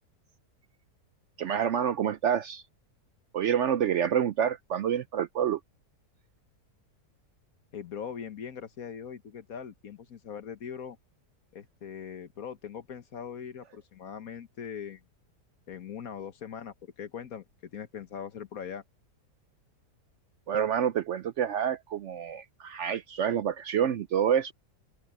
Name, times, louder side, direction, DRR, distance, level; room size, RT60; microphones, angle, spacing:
voice 1, 1.4-2.6 3.3-5.6 20.5-24.5, right 9 dB, 75° right, 0.6 m, -28 dB
voice 2, 7.7-11.0 11.5-15.0 15.7-17.4 17.7-18.8, left 7 dB, 60° left, 1.6 m, -41 dB
open air
omnidirectional pair, 1.8 m